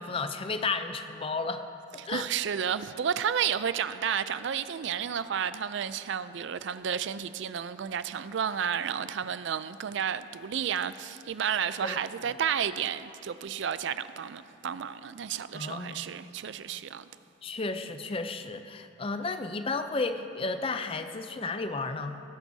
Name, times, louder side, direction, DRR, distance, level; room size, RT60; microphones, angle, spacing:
voice 1, 0.0-1.6 2.1-2.3 11.8-12.0 15.5-16.1 17.4-22.2, left 3 dB, 25° left, 0.4 m, -33 dB
voice 2, 2.0-17.0, right 8 dB, 60° right, 0.4 m, -31 dB
20.0 x 11.0 x 2.7 m
head